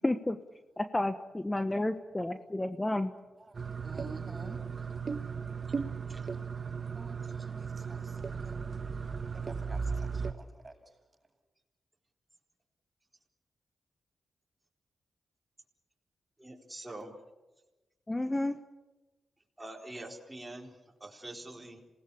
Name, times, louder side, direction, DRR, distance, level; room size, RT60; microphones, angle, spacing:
voice 1, 0.0-0.4 0.8-3.1 18.1-18.6, left 1 dB, 15° left, 9 dB, 1.2 m, -31 dB
sound 1, 3.5-10.3, right 5 dB, 45° right, 1.4 m, -36 dB
voice 2, 3.8-4.6 6.9-8.6 9.3-10.7, right 2 dB, 30° right, 3 dB, 7.5 m, -50 dB
voice 3, 16.4-17.1 19.6-21.8, right 1 dB, 15° right, -1 dB, 4.4 m, -45 dB
27.0 x 18.5 x 8.6 m, 1.1 s
cardioid pair, 65°, 0 cm